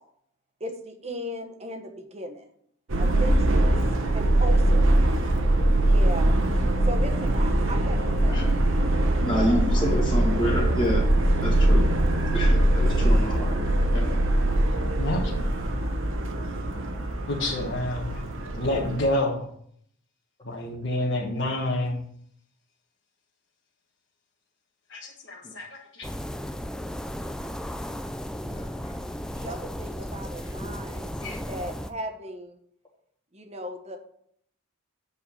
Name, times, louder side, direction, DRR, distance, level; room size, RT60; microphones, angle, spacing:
voice 1, 0.6-2.5 3.0-3.7 4.1-4.8 5.8-6.4 6.8-8.6 9.3-9.7 29.3-32.6 33.3-34.0, right 1 dB, 30° right, 5 dB, 1.1 m, -37 dB
Subway metro underground, 2.9-19.0, right 1 dB, 65° right, 1.1 m, -22 dB
voice 2, 9.2-11.0 11.4-11.9 12.3-13.6 13.9-14.1 25.4-25.5 28.4-28.9 30.4-30.7, left 1 dB, 20° left, -7 dB, 1.8 m, -28 dB
voice 3, 15.0-15.3 17.3-18.2 18.5-19.5 20.4-22.0 24.9-26.1 31.2-31.4, left 1 dB, 55° left, -3 dB, 1.4 m, -28 dB
sound 1, 26.0-31.9, equal, 5° left, 0.3 m, -35 dB
8.4 x 4.8 x 7.0 m, 0.66 s
head